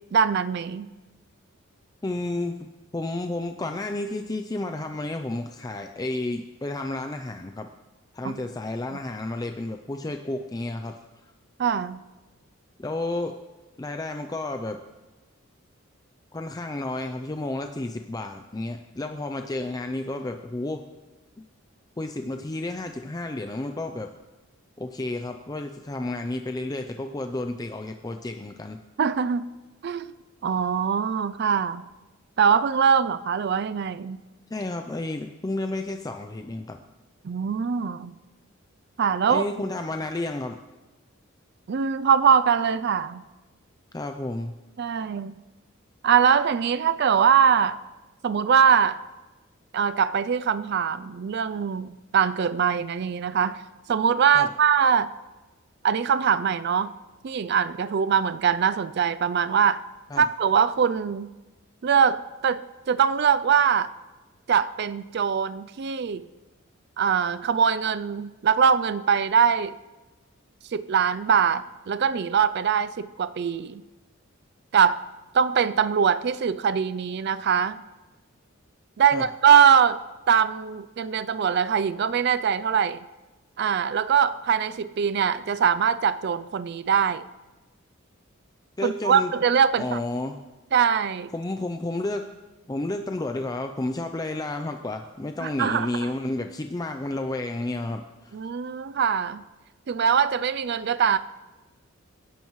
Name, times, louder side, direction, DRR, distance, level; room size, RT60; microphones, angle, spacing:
voice 1, 0.1-0.9 8.2-8.4 11.6-12.0 29.0-29.4 29.8-30.1 30.4-31.8 32.4-34.2 37.2-38.1 39.0-39.4 41.7-43.2 44.8-45.3 46.0-47.8 48.2-49.0 49.7-53.6 53.9-55.1 55.8-56.9 57.2-59.8 60.2-61.3 61.8-62.6 62.9-63.9 64.5-66.2 67.0-69.7 70.7-73.8 74.7-75.0 75.3-77.8 79.0-80.0 80.3-83.0 83.6-87.2 88.8-90.0 90.7-91.3 95.4-95.9 98.3-99.4 99.9-101.2, right 7 dB, 55° right, 13 dB, 0.4 m, -22 dB
voice 2, 2.0-7.7 8.1-11.0 12.8-13.4 13.8-14.8 16.3-20.8 22.0-24.1 24.8-28.8 34.5-36.8 39.3-40.6 43.9-44.5 54.3-54.5 60.1-60.3 79.1-79.3 88.8-89.3 89.8-90.4 91.3-92.3 92.7-98.3, left 2 dB, 20° left, 5 dB, 0.5 m, -31 dB
25.5 x 11.0 x 3.1 m, 1.2 s
head